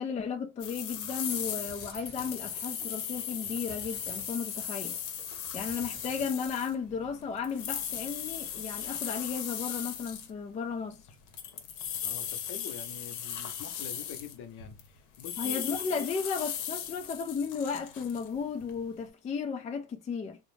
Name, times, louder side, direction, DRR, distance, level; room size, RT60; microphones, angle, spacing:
voice 1, 0.0-5.0 5.5-11.0 15.4-20.4, left 6 dB, 20° left, 0.3 m, -34 dB
sound 1, 0.6-10.3 11.1-14.9 15.1-19.0, left 9 dB, 85° left, 0.7 m, -37 dB
sound 2, 1.2-6.3, right 4 dB, 30° right, 0.7 m, -54 dB
voice 2, 12.0-15.6, left 8 dB, 50° left, 0.7 m, -45 dB
2.5 x 2.1 x 3.1 m
supercardioid pair, 95°, 37 cm